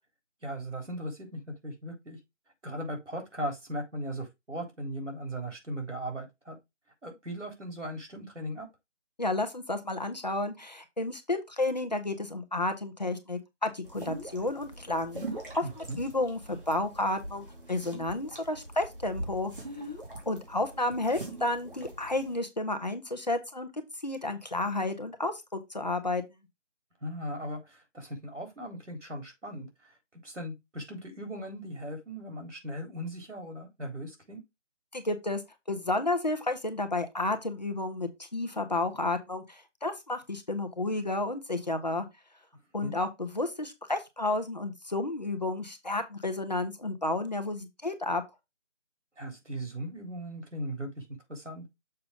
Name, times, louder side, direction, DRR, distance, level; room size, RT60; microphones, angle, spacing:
voice 1, 0.4-2.2 2.6-6.6 7.0-8.7 15.6-16.0 27.0-34.4 42.8-42.9 49.2-51.0 51.3-51.7, equal, 80° right, 3.9 m, -38 dB
voice 2, 9.2-15.2 15.5-19.5 20.3-26.2 34.9-35.4 35.7-42.1 42.7-48.2, left 2 dB, 35° left, 1.0 m, -31 dB
sound 1, 13.8-22.4, right 1 dB, 50° right, 2.6 m, -42 dB
6.8 x 5.2 x 3.6 m
figure-of-eight pair, 170°, 36 cm